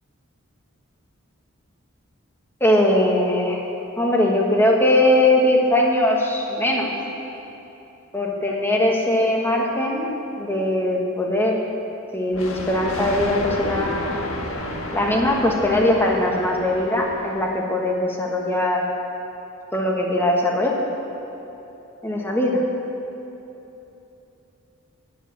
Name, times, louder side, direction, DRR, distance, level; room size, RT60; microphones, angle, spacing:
voice 1, 2.6-3.6 4.0-6.9 8.1-10.1 10.4-11.6 12.1-14.1 14.9-18.8 19.7-20.8 22.0-22.6, left 1 dB, 10° left, -1 dB, 1.3 m, -20 dB
Thunder, 12.3-17.7, left 1 dB, 80° left, 1.4 m, -31 dB
9.5 x 8.7 x 9.1 m, 3.0 s
head